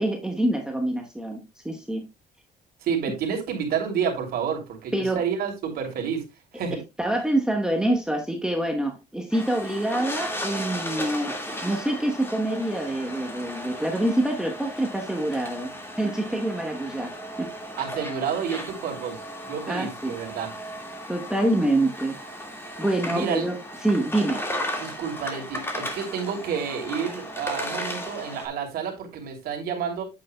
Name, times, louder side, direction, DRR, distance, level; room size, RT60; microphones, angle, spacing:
voice 1, 0.0-2.0 4.9-5.2 6.7-17.1 17.4-17.5 19.7-20.2 21.1-22.2 22.8-24.4, right 1 dB, 5° right, 1.0 m, -26 dB
voice 2, 2.8-6.2 6.5-6.8 17.8-19.2 19.4-20.5 22.7-23.5 24.8-30.0, right 7 dB, 65° right, 2.9 m, -29 dB
sound 1, 9.3-28.5, equal, 15° left, 1.9 m, -35 dB
8.5 x 7.8 x 2.2 m
cardioid pair, 110°, 17 cm